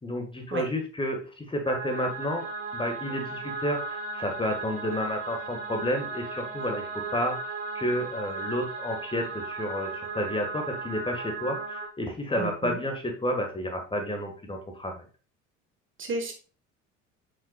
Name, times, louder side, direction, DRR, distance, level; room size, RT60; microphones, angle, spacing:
voice 1, 0.0-2.5 2.7-15.0, equal, 15° left, 3 dB, 1.7 m, -31 dB
sound 1, 1.7-11.9, right 3 dB, 70° right, 2.2 m, -36 dB
voice 2, 12.4-12.8 16.0-16.3, right 3 dB, 30° right, 4 dB, 1.5 m, -32 dB
7.5 x 6.3 x 2.4 m, 0.37 s
figure-of-eight pair, 60°, 38 cm